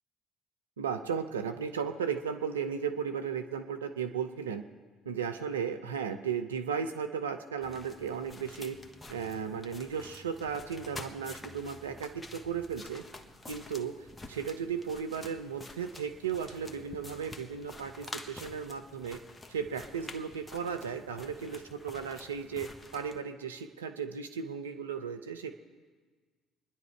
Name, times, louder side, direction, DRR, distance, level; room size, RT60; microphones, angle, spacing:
voice 1, 0.8-4.6 5.0-8.8 9.1-13.0 13.5-19.2 19.5-25.5, right 7 dB, 90° right, 7 dB, 0.7 m, -35 dB
sound 1, 7.6-23.2, left 2 dB, 20° left, 1.3 m, -48 dB
25.0 x 10.5 x 4.6 m, 1.4 s
hypercardioid pair, 55°, 0 cm